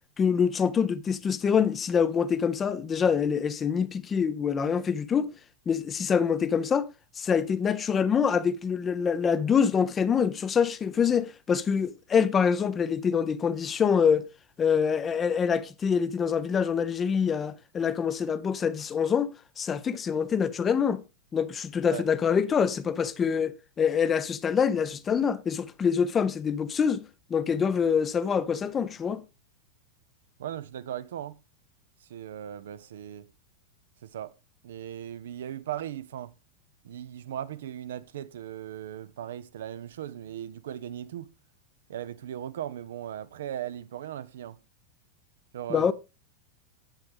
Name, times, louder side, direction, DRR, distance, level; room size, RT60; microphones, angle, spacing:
voice 1, 0.2-5.3 5.7-6.9 7.2-14.2 14.6-21.0 21.3-27.0 27.3-29.2 45.7-45.9, left 7 dB, 20° left, 0.6 m, -25 dB
voice 2, 30.4-31.4 32.0-33.3 34.0-34.4 34.6-36.3 36.8-41.3 41.9-44.6 45.5-45.9, right 11 dB, 60° right, 0.5 m, -38 dB
8.9 x 7.7 x 3.4 m
figure-of-eight pair, 90°, 0 cm